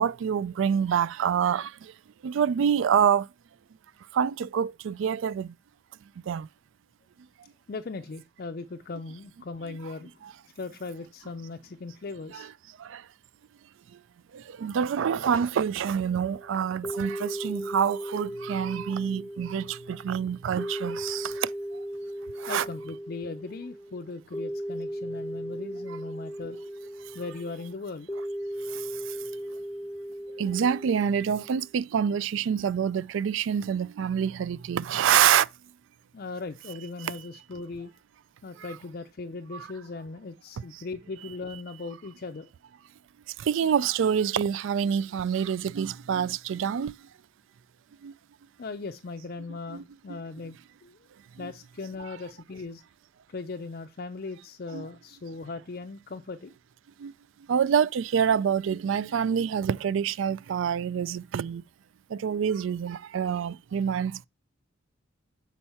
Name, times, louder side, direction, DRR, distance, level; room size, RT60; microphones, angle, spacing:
voice 1, 0.0-1.7 2.2-3.3 4.1-5.5 6.3-6.5 9.7-9.8 10.2-10.3 12.3-12.5 12.9-13.0 14.6-21.5 22.4-22.7 30.4-35.5 39.5-39.7 43.5-46.9 48.0-48.1 49.7-49.8 50.1-50.2 51.4-51.5 54.7-54.9 57.0-57.1 57.5-61.6 62.1-64.3, right 8 dB, 65° right, 0.3 m, -26 dB
voice 2, 7.7-10.2 10.5-12.5 22.5-26.6 27.1-28.1 36.1-38.0 38.4-42.5 48.6-51.0 51.4-52.8 53.3-56.5, left 3 dB, 45° left, 0.4 m, -38 dB
sound 1, 16.2-31.6, equal, 10° left, 0.7 m, -37 dB
7.1 x 4.4 x 4.3 m
head